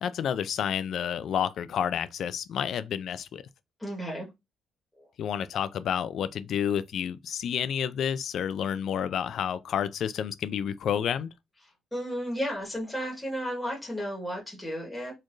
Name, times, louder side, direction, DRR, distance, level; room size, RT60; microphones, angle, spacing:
voice 1, 0.0-3.4 5.2-11.3, left 8 dB, 65° left, 0.4 m, -30 dB
voice 2, 3.8-4.3 5.0-5.1 11.9-15.1, equal, 5° left, 1.7 m, -33 dB
4.2 x 3.1 x 2.6 m
cardioid pair, 90°, 0 cm